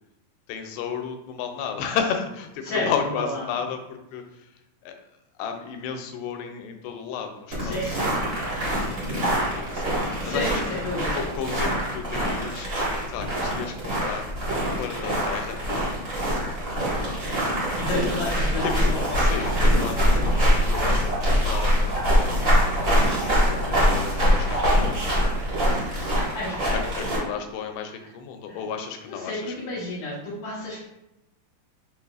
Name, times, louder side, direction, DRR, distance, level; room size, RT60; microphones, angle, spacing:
voice 1, 0.5-4.5 4.8-5.0 5.4-10.6 11.1-12.7 13.1-14.2 14.6-15.9 18.2-18.3 18.6-21.0 21.4-22.0 22.8-23.3 23.6-25.4 26.7-29.6, left 7 dB, 85° left, 5 dB, 2.4 m, -33 dB
Snow Walking Quiet, 7.5-27.2, equal, 65° right, 0.7 m, -24 dB
voice 2, 7.6-8.1 10.2-11.2 17.7-19.5 26.2-27.3 28.5-28.6 29.1-30.9, left 2 dB, 65° left, -7 dB, 2.1 m, -31 dB
5.7 x 3.2 x 2.3 m, 0.89 s
omnidirectional pair, 4.3 m